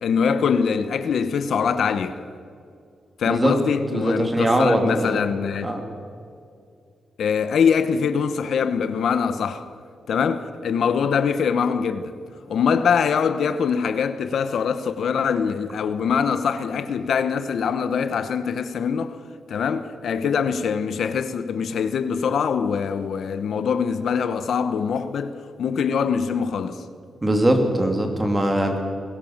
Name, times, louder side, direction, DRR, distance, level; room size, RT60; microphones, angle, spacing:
voice 1, 0.0-2.2 3.2-5.7 7.2-9.7 10.1-12.1 12.5-19.2 19.5-26.8, left 6 dB, 70° left, 1.0 m, -23 dB
voice 2, 3.9-5.2 5.6-5.8 27.2-28.8, right 1 dB, 15° right, 2.8 m, -21 dB
21.5 x 17.5 x 7.3 m
wide cardioid pair, 135°, 0 cm